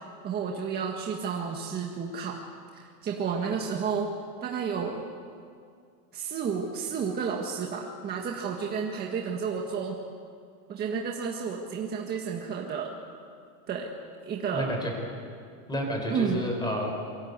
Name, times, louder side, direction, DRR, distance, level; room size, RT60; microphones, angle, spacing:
voice 1, 0.2-2.4 2.7-4.1 4.4-5.0 6.1-10.0 10.7-12.9 13.7-13.9 14.2-14.8 16.1-16.5, right 6 dB, 20° right, 0 dB, 1.7 m, -31 dB
voice 2, 14.5-14.9 15.7-16.9, equal, 10° left, 2 dB, 4.5 m, -30 dB
28.0 x 23.5 x 8.2 m, 2.3 s
supercardioid pair, 165°, 47 cm